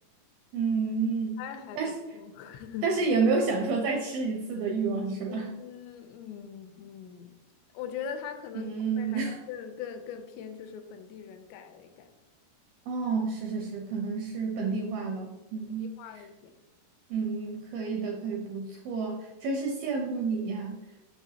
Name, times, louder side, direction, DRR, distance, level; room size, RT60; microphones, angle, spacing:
voice 1, 0.5-1.4 1.8-1.9 2.8-5.5 8.5-9.4 12.9-16.3 17.1-20.8, right 4 dB, 80° right, 1 dB, 2.2 m, -30 dB
voice 2, 1.4-2.9 5.3-7.4 7.7-9.2 9.5-12.1 15.8-16.5, left 8 dB, 85° left, 7 dB, 2.8 m, -41 dB
7.0 x 6.1 x 2.8 m, 1.1 s
omnidirectional pair, 5.0 m